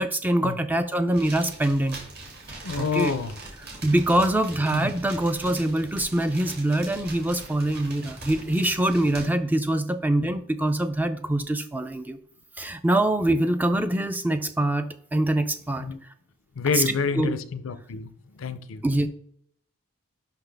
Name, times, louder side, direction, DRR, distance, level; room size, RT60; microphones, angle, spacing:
voice 1, 0.0-2.0 2.8-3.1 3.8-12.2 12.6-15.9 16.7-17.3 18.8-19.1, right 1 dB, 10° right, 0.3 m, -24 dB
sound 1, 1.1-9.3, right 2 dB, 50° right, 2.1 m, -42 dB
voice 2, 2.6-3.3 4.7-4.9 15.8-16.0 16.6-18.1 18.4-18.8, left 5 dB, 75° left, 0.5 m, -28 dB
5.7 x 5.7 x 3.4 m
head